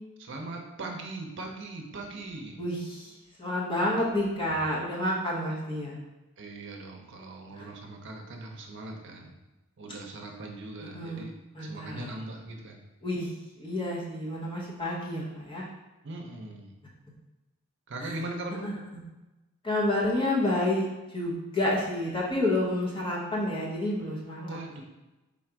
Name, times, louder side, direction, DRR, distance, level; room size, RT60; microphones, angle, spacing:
voice 1, 0.2-2.6 6.4-9.3 9.8-11.3 11.6-12.8 16.0-16.7 17.9-18.7 24.4-24.8, right 2 dB, 60° right, 2 dB, 0.6 m, -40 dB
voice 2, 2.6-3.1 3.4-6.0 7.5-7.7 10.9-11.2 11.5-12.1 13.0-13.3 13.6-15.7 18.0-18.2 18.6-18.7 19.6-20.9 21.1-24.6, left 1 dB, 25° left, -4 dB, 0.9 m, -29 dB
3.8 x 2.5 x 4.5 m, 1.0 s
head